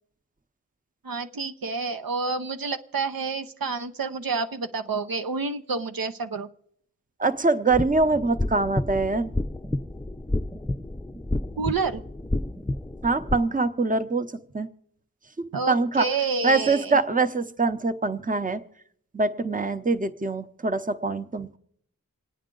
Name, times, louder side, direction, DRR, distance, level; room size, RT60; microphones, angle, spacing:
voice 1, 1.0-6.5 11.6-12.0 15.5-17.0, right 4 dB, 85° right, 8 dB, 0.7 m, -29 dB
voice 2, 7.2-9.3 13.0-14.3 14.5-14.7 15.4-16.1 16.4-18.6 19.1-21.6, right 3 dB, 25° right, 10 dB, 0.8 m, -24 dB
sound 1, 7.7-13.4, left 1 dB, 5° left, 0.5 m, -30 dB
27.0 x 9.3 x 3.8 m, 0.70 s
wide cardioid pair, 50°, 34 cm